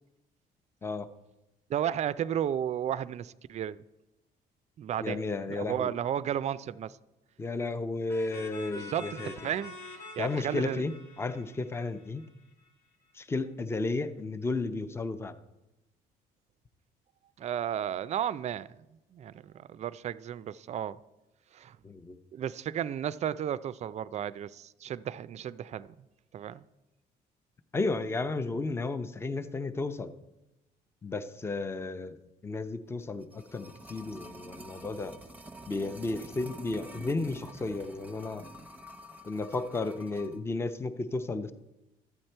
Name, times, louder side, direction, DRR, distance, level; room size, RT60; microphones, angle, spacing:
voice 1, 1.7-3.8 4.8-5.2 5.5-7.0 8.7-10.8 17.4-18.7 19.1-21.0 21.5-21.8 22.3-25.9 26.3-26.6, right 10 dB, 40° right, 0.4 m, -33 dB
voice 2, 5.0-5.9 7.4-9.3 10.2-10.9 11.2-12.2 13.1-15.3 21.8-22.2 27.7-30.1 31.0-32.2 32.4-35.1 35.7-38.5 39.2-41.5, left 3 dB, 15° left, 0.6 m, -33 dB
sound 1, 8.1-12.7, left 3 dB, 80° left, 1.5 m, -47 dB
sound 2, 33.0-40.4 40.7-40.8, right 1 dB, 10° right, 0.9 m, -48 dB
12.5 x 8.0 x 4.4 m
cardioid pair, 110°, 17 cm